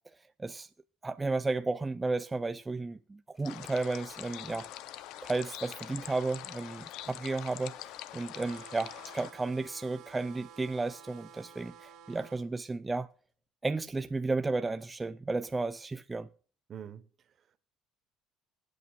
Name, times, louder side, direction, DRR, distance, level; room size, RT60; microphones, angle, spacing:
voice 1, 0.4-0.7 1.0-4.7 5.2-13.1 13.6-16.3, right 3 dB, 20° right, 0.4 m, -33 dB
sound 1, 3.3-13.4, left 3 dB, 30° left, 6.5 m, -66 dB
sound 2, 3.4-9.3, left 13 dB, 75° left, 0.6 m, -44 dB
sound 3, 8.3-12.4, right 8 dB, 70° right, 2.0 m, -52 dB
voice 2, 16.7-17.6, right 9 dB, 50° right, 1.2 m, -47 dB
23.0 x 8.4 x 2.4 m
supercardioid pair, 85°, 0 cm